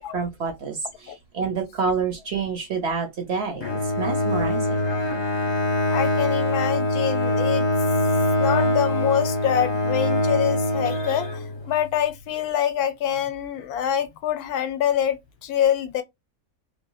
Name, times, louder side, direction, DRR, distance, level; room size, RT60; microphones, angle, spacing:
voice 1, 0.1-4.9, right 5 dB, 55° right, 0.8 m, -28 dB
Bowed string instrument, 3.6-11.8, left 1 dB, 35° left, 0.4 m, -23 dB
voice 2, 5.9-7.7 8.4-16.0, left 9 dB, 85° left, 1.1 m, -25 dB
3.0 x 2.5 x 2.2 m
omnidirectional pair, 1.6 m